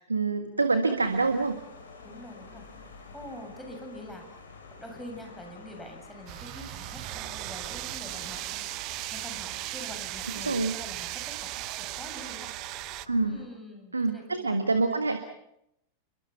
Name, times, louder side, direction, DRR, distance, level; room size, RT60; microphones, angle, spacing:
voice 1, 0.0-1.6 10.5-10.7 13.1-13.4 13.9-15.2, right 3 dB, 80° right, 8 dB, 1.7 m, -26 dB
sound 1, 0.9-13.4, left 4 dB, 70° left, 5.5 m, -50 dB
voice 2, 2.0-2.7 3.1-4.3 4.7-14.6, left 1 dB, ahead, 2 dB, 7.9 m, -45 dB
sound 2, 6.3-13.1, right 18 dB, 40° right, 0.9 m, -37 dB
30.0 x 23.5 x 5.9 m, 0.77 s
figure-of-eight pair, 90°, 0 cm